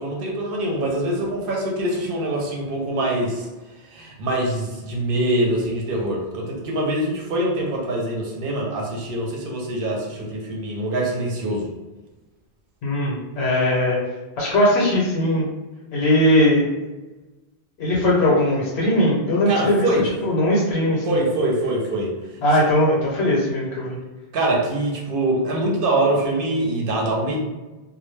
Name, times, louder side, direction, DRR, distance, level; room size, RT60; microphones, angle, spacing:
voice 1, 0.0-3.5 3.9-11.7 19.5-20.1 21.1-22.1 24.3-27.4, right 1 dB, 65° right, -1 dB, 0.7 m, -24 dB
voice 2, 12.8-14.0 14.4-15.5 15.9-16.7 17.8-19.9 20.2-21.2 22.4-24.0, left 1 dB, 75° left, -5 dB, 0.9 m, -19 dB
2.1 x 2.0 x 3.1 m, 1.1 s
omnidirectional pair, 1.1 m